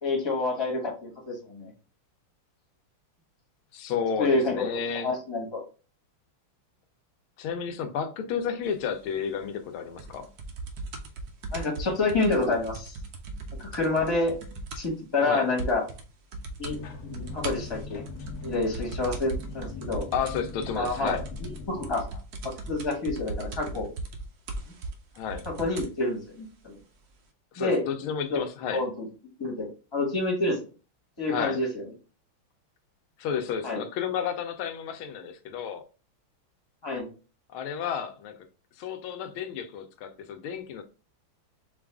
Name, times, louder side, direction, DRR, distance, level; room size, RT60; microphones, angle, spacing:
voice 1, 0.0-1.7 4.2-4.7 4.9-5.6 11.5-12.9 13.6-14.3 14.7-15.8 16.6-16.8 17.1-18.0 18.4-20.0 20.8-21.2 21.7-22.0 22.4-23.9 25.4-26.8 27.6-27.8 28.3-28.4 28.7-29.1 29.4-30.6 31.2-31.8 33.6-33.8 36.8-37.1, left 2 dB, 15° left, 1.1 m, -28 dB
voice 2, 3.7-5.1 7.4-10.3 15.2-15.5 20.1-21.2 25.2-25.4 27.5-28.8 31.3-31.6 33.2-35.8 37.5-38.4 38.8-40.8, left 7 dB, 90° left, 1.5 m, -32 dB
sound 1, 10.0-15.0 15.3-15.4 15.6-16.0 16.3-16.8 17.1-26.0 26.8-26.9, right 3 dB, 65° right, 1.0 m, -38 dB
sound 2, 16.6-21.9, left 3 dB, 60° left, 1.0 m, -40 dB
5.4 x 2.4 x 3.5 m
omnidirectional pair, 2.2 m